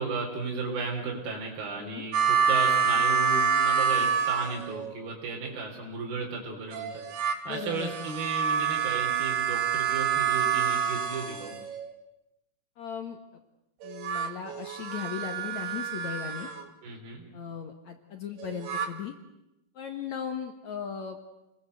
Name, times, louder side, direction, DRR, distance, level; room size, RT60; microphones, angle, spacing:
voice 1, 0.0-7.0 7.5-11.5 16.8-17.3, right 4 dB, 70° right, -2 dB, 5.7 m, -34 dB
sound 1, 2.1-5.0 6.7-11.9 13.8-16.6 18.4-18.9, right 6 dB, 90° right, 4.0 m, -27 dB
voice 2, 7.5-7.9 12.8-13.2 13.8-16.5 17.3-19.1 19.8-21.2, left 8 dB, 55° left, 5 dB, 2.5 m, -37 dB
29.5 x 20.5 x 8.1 m, 0.92 s
omnidirectional pair, 4.4 m